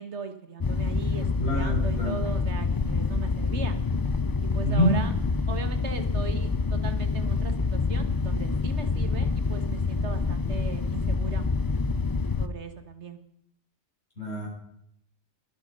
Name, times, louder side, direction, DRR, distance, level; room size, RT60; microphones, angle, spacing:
voice 1, 0.0-3.8 4.4-5.1 5.5-11.5 12.4-13.2, right 5 dB, 75° right, 9 dB, 1.8 m, -38 dB
sound 1, 0.6-12.5, left 4 dB, 30° left, 0.4 m, -27 dB
voice 2, 1.4-2.2 4.6-5.0 14.2-14.5, equal, 75° left, -5 dB, 8.5 m, -25 dB
21.5 x 9.9 x 5.3 m, 0.70 s
omnidirectional pair, 1.2 m